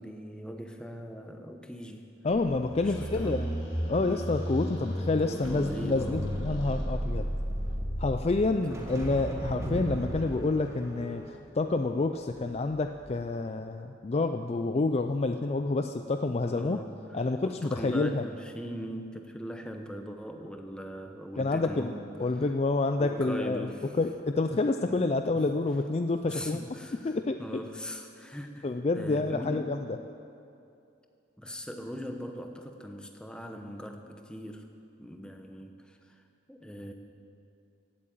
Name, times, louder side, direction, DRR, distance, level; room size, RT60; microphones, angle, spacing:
voice 1, 0.0-2.1 2.8-3.4 4.0-4.4 5.2-6.3 8.7-8.8 16.5-17.0 17.4-22.1 23.0-23.9 24.9-25.0 25.3-25.5 26.3-29.8 31.4-34.6 35.0-36.2 36.5-36.9, equal, 5° left, 4 dB, 0.9 m, -40 dB
voice 2, 2.2-3.5 3.8-7.3 8.0-16.8 17.1-18.3 21.4-21.9 22.2-23.7 23.9-26.6 27.0-27.6 28.6-30.0, left 3 dB, 30° left, 7 dB, 0.4 m, -28 dB
sound 1, 2.3-12.6 13.0-13.2, equal, 15° right, 1.6 m, -34 dB
Squeak, 2.7-7.2, left 1 dB, 80° left, 4.5 m, -52 dB
15.5 x 8.3 x 8.8 m, 2.6 s
head